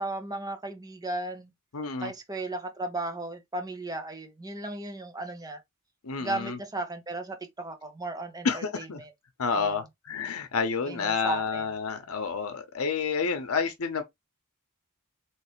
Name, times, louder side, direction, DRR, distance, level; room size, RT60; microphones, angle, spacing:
voice 1, 0.0-1.5 2.0-5.6 6.2-9.1 9.5-9.8 10.9-11.7, right 2 dB, 15° right, 0.8 m, -35 dB
voice 2, 1.7-2.1 6.0-6.6 8.4-9.0 9.4-14.0, left 5 dB, 85° left, 0.7 m, -29 dB
3.2 x 3.1 x 3.0 m
head